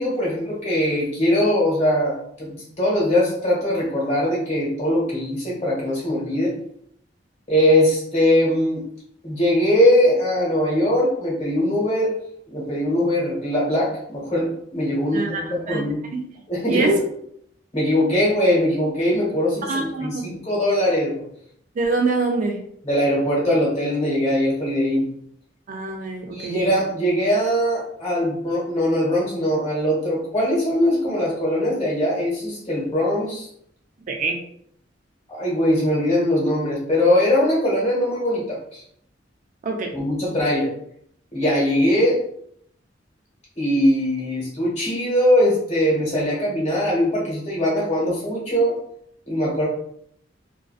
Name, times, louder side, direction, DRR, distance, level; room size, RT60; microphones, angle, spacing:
voice 1, 0.0-6.5 7.5-8.8 9.2-12.2 12.5-16.0 16.5-17.0 17.7-21.3 22.8-25.1 26.3-33.5 35.3-38.8 39.9-40.7 41.3-42.2 43.6-48.8 49.3-49.7, left 1 dB, 35° left, -6 dB, 1.1 m, -21 dB
voice 2, 15.1-15.9 16.1-16.2 16.7-16.9 19.7-20.1 21.8-22.6 25.7-26.6 34.1-34.4 39.6-39.9, right 3 dB, 45° right, 2 dB, 0.4 m, -25 dB
2.4 x 2.2 x 2.4 m, 0.70 s
head